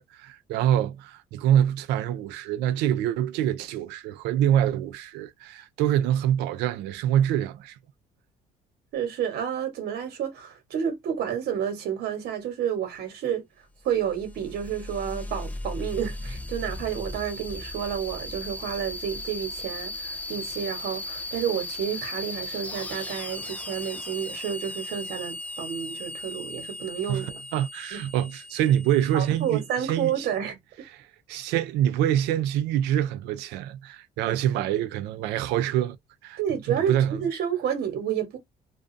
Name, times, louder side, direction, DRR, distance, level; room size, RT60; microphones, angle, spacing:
voice 1, 0.0-7.8 27.1-30.3 31.3-36.0 36.2-36.4 36.7-37.2, right 11 dB, 90° right, 0.4 m, -25 dB
voice 2, 8.9-13.4 13.8-27.4 27.9-28.0 29.1-30.5 34.3-34.7 36.4-38.4, right 8 dB, 70° right, 1.1 m, -30 dB
sound 1, 13.9-30.2, left 2 dB, 10° left, 0.3 m, -37 dB
2.3 x 2.3 x 2.5 m
cardioid pair, 110°, 17 cm